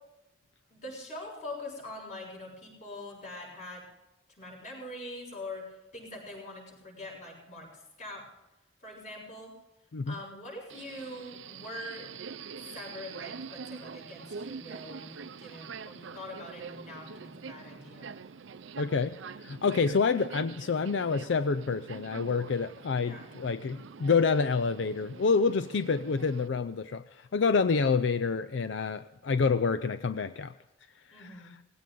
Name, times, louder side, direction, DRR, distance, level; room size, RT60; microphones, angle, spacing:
voice 1, 0.7-3.8 4.4-7.7 8.0-8.3 8.8-9.5 10.0-12.1 12.7-18.2 23.0-23.3 31.1-31.5, left 1 dB, 40° left, -2 dB, 6.5 m, -43 dB
Subway metro underground, 10.7-26.5, right 5 dB, 85° right, 0.6 m, -45 dB
voice 2, 18.8-19.1 19.4-30.5 31.2-31.3, left 5 dB, 80° left, 11 dB, 0.5 m, -28 dB
19.0 x 16.5 x 3.9 m, 1.0 s
head